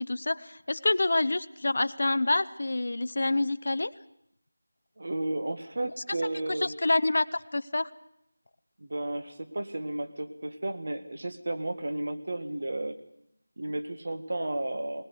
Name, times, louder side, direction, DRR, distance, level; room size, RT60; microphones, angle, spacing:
voice 1, 0.0-3.9 6.6-7.9, left 2 dB, 50° left, 14 dB, 0.8 m, -27 dB
voice 2, 5.0-6.7 8.8-13.0 13.6-15.0, right 1 dB, 50° right, 8 dB, 1.8 m, -33 dB
20.5 x 19.5 x 8.2 m, 0.75 s
figure-of-eight pair, 180°, 0 cm